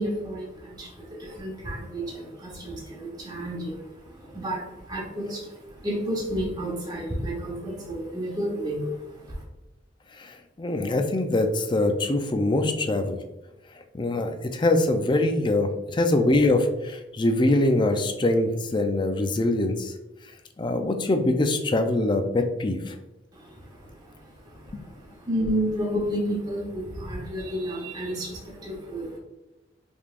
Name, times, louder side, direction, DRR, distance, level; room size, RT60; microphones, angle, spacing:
voice 1, 0.0-9.4 23.3-29.2, equal, 20° right, -4 dB, 1.0 m, -31 dB
voice 2, 10.2-13.2 13.9-19.9 20.6-23.0 24.7-24.8, left 2 dB, 25° left, 6 dB, 0.4 m, -23 dB
5.3 x 3.4 x 2.4 m, 1.0 s
head